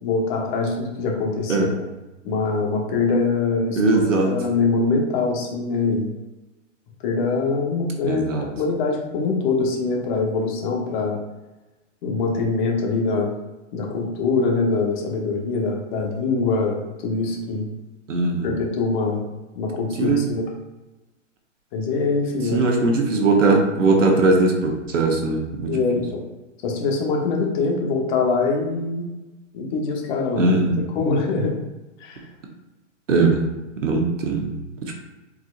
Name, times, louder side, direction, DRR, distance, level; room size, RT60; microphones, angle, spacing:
voice 1, 0.0-1.8 2.2-6.1 7.0-11.2 12.0-13.3 13.7-17.7 18.4-19.2 19.5-20.4 21.7-23.5 23.9-24.2 25.7-26.0 26.6-29.1 29.5-31.5 32.0-32.2, left 4 dB, 40° left, 0 dB, 1.1 m, -24 dB
voice 2, 3.7-4.3 8.0-8.4 18.1-18.5 20.0-20.3 22.5-25.8 30.4-30.8 33.1-33.4 33.8-34.9, right 3 dB, 80° right, 2 dB, 1.1 m, -20 dB
4.7 x 3.8 x 2.4 m, 1.1 s
hypercardioid pair, 125°, 38 cm